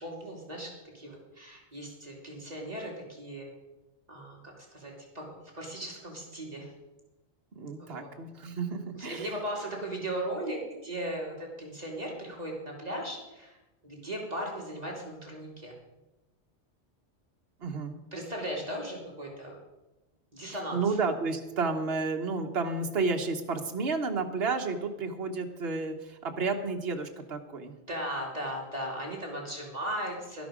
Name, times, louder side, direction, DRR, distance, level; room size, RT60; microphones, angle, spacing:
voice 1, 0.0-3.5 4.1-5.3 5.5-6.7 7.9-8.0 8.9-13.6 13.8-15.7 18.1-19.6 20.3-20.8 27.9-30.5, right 1 dB, 35° right, -2 dB, 2.9 m, -37 dB
voice 2, 7.6-9.3 17.6-18.0 20.7-27.8, right 4 dB, 60° right, 4 dB, 1.4 m, -31 dB
12.5 x 11.5 x 5.0 m, 1.0 s
omnidirectional pair, 1.2 m